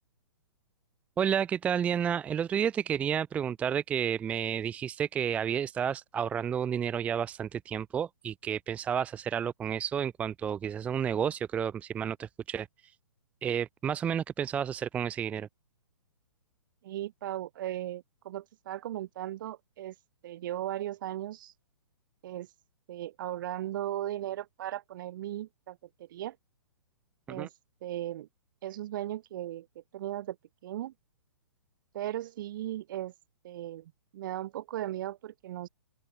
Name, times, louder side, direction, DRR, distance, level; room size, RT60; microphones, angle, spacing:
voice 1, 1.2-12.7 13.4-15.5 27.3-27.5, right 8 dB, 10° right, 0.6 m, -31 dB
voice 2, 16.8-19.9 20.2-21.5 22.2-22.5 22.9-26.4 27.3-27.5 27.8-28.3 28.6-30.4 30.6-30.9 31.9-33.1 33.4-35.7, right 13 dB, 40° right, 5.9 m, -37 dB
open air
hypercardioid pair, 155°, 16 cm